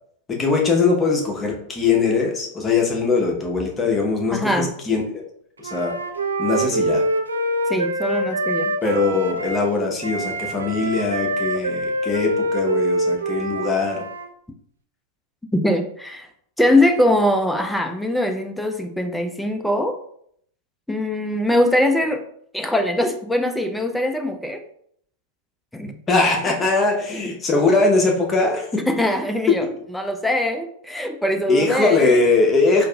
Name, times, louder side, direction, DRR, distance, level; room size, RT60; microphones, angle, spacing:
voice 1, 0.3-5.2 5.6-5.9 6.4-7.0 8.8-14.0 26.1-28.8 31.5-32.9, left 3 dB, 20° left, 0 dB, 0.8 m, -21 dB
voice 2, 4.3-4.7 7.7-8.7 15.5-16.3 16.6-20.0 20.9-22.2 22.5-24.6 25.7-25.9 28.9-29.7 29.9-32.3, left 1 dB, 5° left, 5 dB, 0.4 m, -22 dB
Wind instrument woodwind instrument, 5.6-9.7 10.0-14.2, right 1 dB, 80° right, 0.3 m, -25 dB
4.5 x 2.5 x 2.3 m, 0.66 s
figure-of-eight pair, 95°, 0 cm